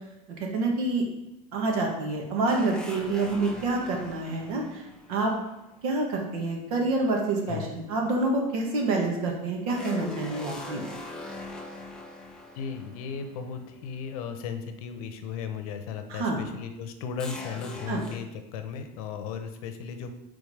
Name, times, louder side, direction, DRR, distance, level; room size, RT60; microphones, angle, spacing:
voice 1, 0.5-1.0 1.5-4.8 5.1-5.3 5.8-10.8 16.1-16.4 17.9-18.0, right 2 dB, 85° right, 1 dB, 1.5 m, -27 dB
sound 1, 2.5-6.0 9.7-13.8 14.0-14.1 17.2-18.2, left 2 dB, 5° left, 0.3 m, -41 dB
voice 2, 12.5-20.2, left 6 dB, 75° left, 7 dB, 0.8 m, -36 dB
5.3 x 3.7 x 4.9 m, 0.93 s
cardioid pair, 175°, 19 cm